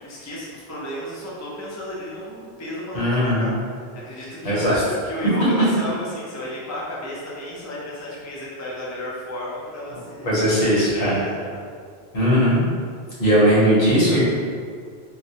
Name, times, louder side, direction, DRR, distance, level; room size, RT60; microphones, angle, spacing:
voice 1, 0.0-11.7, left 1 dB, 25° left, -6 dB, 0.4 m, -33 dB
voice 2, 2.9-3.5 4.4-4.8 10.2-11.2 12.1-12.6 13.2-14.2, equal, 60° left, -8 dB, 1.2 m, -18 dB
3.9 x 2.1 x 2.7 m, 2.1 s
omnidirectional pair, 1.1 m